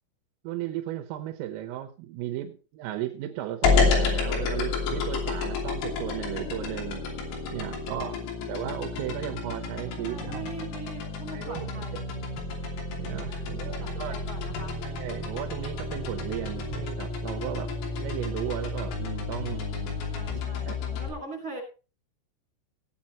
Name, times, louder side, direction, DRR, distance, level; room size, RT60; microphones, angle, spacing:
voice 1, 0.5-7.0 7.5-8.2 8.5-10.5 11.3-12.0 13.0-14.2 14.8-19.6 20.7-20.9, right 13 dB, 85° right, 5 dB, 3.7 m, -35 dB
sound 1, 3.6-21.1, left 4 dB, 90° left, 5.7 m, -30 dB
voice 2, 7.6-8.6 10.0-12.0 13.2-13.5 13.7-14.8 19.5-21.6, right 3 dB, 25° right, 1 dB, 6.6 m, -42 dB
18.0 x 8.7 x 4.3 m, 0.34 s
omnidirectional pair, 5.9 m